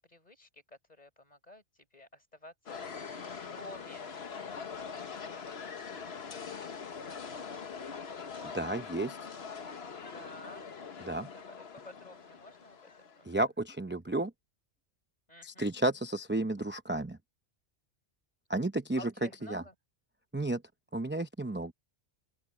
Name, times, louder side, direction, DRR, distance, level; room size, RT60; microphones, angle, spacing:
voice 1, 0.1-1.6 1.9-2.8 3.2-4.1 4.4-5.5 5.8-6.5 10.0-10.7 11.0-13.1 15.3-15.7 19.0-19.7, left 1 dB, 35° left, 4.5 m, -52 dB
sound 1, 2.7-13.3, left 6 dB, 60° left, 1.4 m, -43 dB
voice 2, 8.5-9.3 11.0-11.3 13.3-14.3 15.4-17.2 18.5-19.6 20.3-20.6 20.9-21.7, right 2 dB, 10° right, 0.6 m, -32 dB
open air
omnidirectional pair, 1.2 m